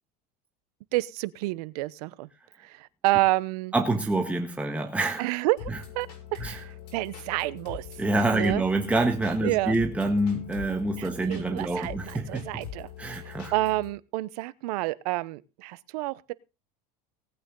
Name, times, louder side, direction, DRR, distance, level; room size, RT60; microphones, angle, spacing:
voice 1, 0.9-2.3 2.6-3.7 5.2-7.8 8.3-8.6 9.4-9.8 11.0-12.9 13.5-16.3, right 19 dB, 75° right, 0.9 m, -29 dB
voice 2, 3.7-5.3 5.7-5.8 6.4-6.6 8.0-12.6 13.0-13.5, right 2 dB, 5° right, 1.5 m, -27 dB
sound 1, 5.6-13.9, left 9 dB, 75° left, 6.7 m, -43 dB
19.0 x 9.0 x 3.9 m
supercardioid pair, 125°, 20 cm